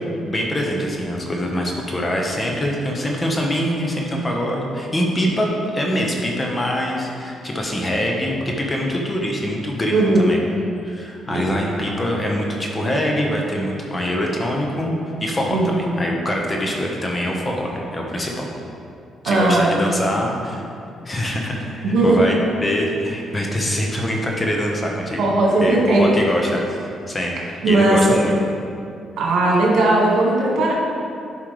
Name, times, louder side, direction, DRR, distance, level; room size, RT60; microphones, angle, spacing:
voice 1, 0.3-10.4 10.8-18.5 19.2-20.6 21.0-22.4 22.6-25.2 25.6-26.6 27.1-27.4 27.6-28.3, equal, 25° left, -1 dB, 1.3 m, -24 dB
voice 2, 9.9-10.2 11.3-11.4 11.7-11.8 15.5-15.8 19.3-19.7 21.8-22.2 25.2-26.1 27.6-28.2 29.2-30.7, right 2 dB, 75° right, -3 dB, 1.8 m, -17 dB
10.5 x 5.5 x 3.4 m, 2.4 s
cardioid pair, 90°, 0 cm